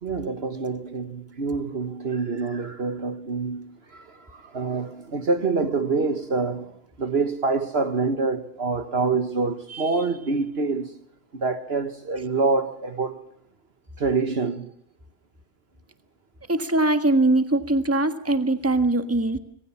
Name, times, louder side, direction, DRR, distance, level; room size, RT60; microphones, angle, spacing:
voice 1, 0.0-10.9 11.3-13.2 14.0-14.7, right 4 dB, 55° right, 1.5 m, -26 dB
voice 2, 16.5-19.4, right 2 dB, 10° right, 1.5 m, -21 dB
26.5 x 20.5 x 7.3 m
omnidirectional pair, 1.3 m